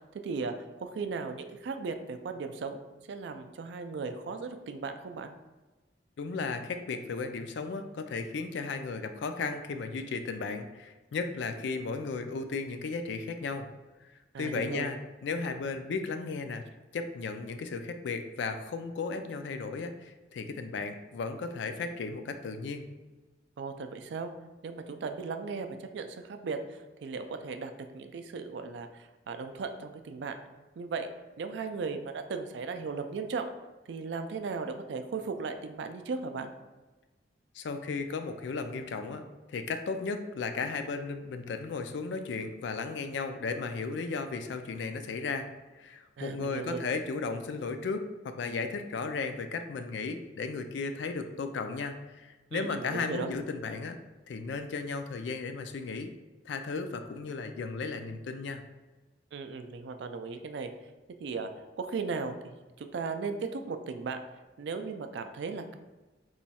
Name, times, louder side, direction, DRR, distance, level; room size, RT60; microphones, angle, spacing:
voice 1, 0.2-2.8 3.1-5.3 14.3-14.9 23.6-24.3 24.6-25.7 25.9-30.4 30.8-31.1 31.4-33.5 33.9-36.5 46.2-46.8 52.5-53.3 59.3-60.7 61.2-61.5 61.8-64.2 64.6-65.8, right 4 dB, 65° right, 8 dB, 0.3 m, -36 dB
voice 2, 6.2-13.7 14.0-14.1 14.4-16.6 16.9-22.9 37.5-45.5 45.7-54.0 54.3-56.1 56.5-58.6, left 4 dB, 70° left, 7 dB, 0.3 m, -35 dB
3.0 x 2.3 x 4.1 m, 1.2 s
head